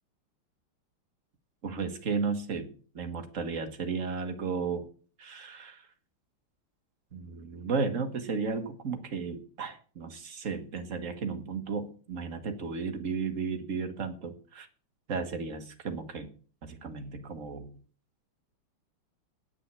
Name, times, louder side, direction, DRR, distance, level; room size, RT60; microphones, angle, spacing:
voice 1, 1.6-4.9 5.2-5.9 7.1-14.7 15.1-16.3 16.6-17.7, right 5 dB, 40° right, 6 dB, 1.6 m, -34 dB
9.5 x 6.0 x 8.1 m, 0.41 s
omnidirectional pair, 2.4 m